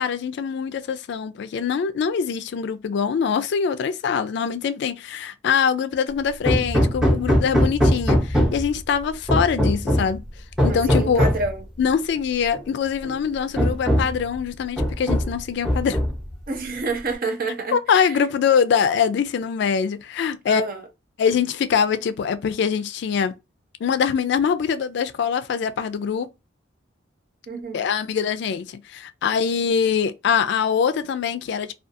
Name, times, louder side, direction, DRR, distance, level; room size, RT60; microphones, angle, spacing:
voice 1, 0.0-10.2 10.6-11.2 11.8-16.0 17.7-20.6 21.2-23.3 23.8-26.3 27.7-31.7, left 7 dB, 65° left, 0.3 m, -23 dB
Hammer, 6.5-8.7 9.3-10.2 10.6-11.5 12.5-12.6 13.0-13.1 13.6-14.2 14.8-15.4 15.6-16.3, equal, 5° right, 0.7 m, -21 dB
voice 2, 10.7-11.6 16.5-18.2 20.5-20.8 27.5-27.8, right 3 dB, 50° right, 0.6 m, -28 dB
2.4 x 2.3 x 2.6 m
head